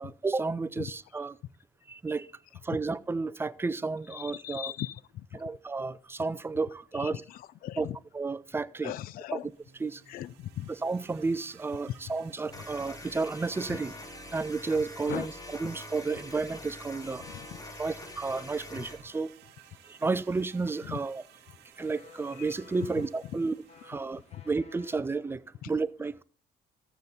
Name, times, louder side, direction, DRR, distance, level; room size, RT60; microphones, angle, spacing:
voice 1, 0.0-1.4 1.9-2.3 2.6-4.7 5.3-7.2 7.8-7.9 8.1-8.9 9.3-9.4 9.8-10.0 10.8-13.9 14.3-15.3 15.6-17.2 17.8-19.3 19.9-21.2 21.8-23.5 23.8-26.2, right 3 dB, 15° right, 0.5 m, -32 dB
voice 2, 4.1-5.3 6.9-8.0 8.8-9.5 10.1-10.7 11.9-12.0 13.7-13.8 15.1-15.3 17.3-17.8 20.8-21.0 22.4-22.5 23.0-23.1 24.3-24.4 25.6-25.7, left 13 dB, 60° left, 0.4 m, -39 dB
sound 1, 9.4-24.5, right 13 dB, 80° right, 1.1 m, -56 dB
sound 2, 9.5-25.0, left 3 dB, 40° left, 2.3 m, -60 dB
sound 3, 12.5-19.0, left 2 dB, 20° left, 1.6 m, -45 dB
14.0 x 7.1 x 4.0 m
cardioid pair, 110°, 17 cm